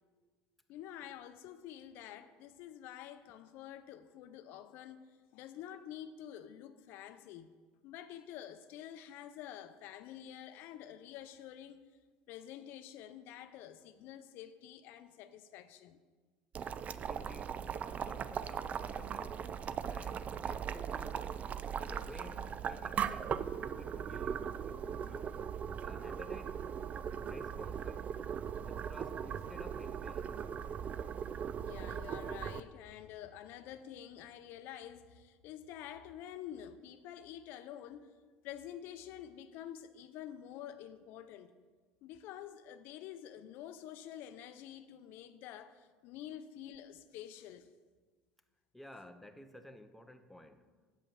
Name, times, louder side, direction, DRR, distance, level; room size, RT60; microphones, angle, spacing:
voice 1, 0.7-7.5 7.8-11.8 12.3-16.0 31.6-38.1 38.4-41.6 42.0-47.7, left 10 dB, 65° left, 0.5 m, -48 dB
Boiling, 16.5-32.6, right 8 dB, 40° right, 0.4 m, -39 dB
voice 2, 17.1-17.6 18.1-21.2 21.8-23.4 23.8-25.4 25.8-26.7 27.2-28.1 28.6-30.4 48.7-50.6, left 1 dB, 5° left, 0.7 m, -53 dB
7.3 x 5.2 x 7.3 m
supercardioid pair, 90°, 4 cm